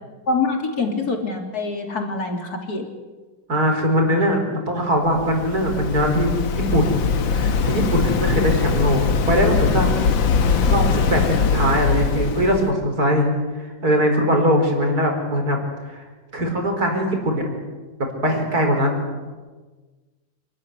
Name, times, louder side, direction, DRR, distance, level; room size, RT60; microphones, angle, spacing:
voice 1, 0.3-2.9 10.6-10.9, left 3 dB, 55° left, 3 dB, 3.6 m, -25 dB
voice 2, 3.5-4.4 4.7-7.0 7.3-9.0 9.3-9.9 10.7-13.3 13.6-15.6 15.9-16.0 16.3-17.4 18.2-19.0, equal, 50° right, 3 dB, 5.3 m, -21 dB
Waves surf, 5.0-12.7, left 5 dB, 85° left, 2.1 m, -21 dB
28.5 x 13.5 x 9.9 m, 1.3 s
omnidirectional pair, 2.0 m